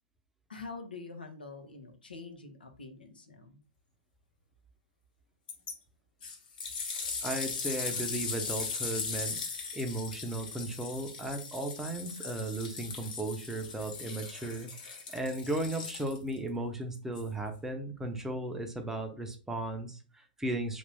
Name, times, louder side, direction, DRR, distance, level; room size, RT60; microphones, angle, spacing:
voice 1, 0.5-3.6, left 4 dB, 90° left, 5 dB, 0.7 m, -45 dB
sound 1, 5.5-5.7 6.2-16.4 17.2-17.3, left 5 dB, 65° left, 1.1 m, -38 dB
voice 2, 7.2-9.4 9.7-20.8, right 1 dB, 5° right, 5 dB, 0.6 m, -36 dB
2.9 x 2.6 x 3.3 m, 0.36 s
hypercardioid pair, 110°, 5 cm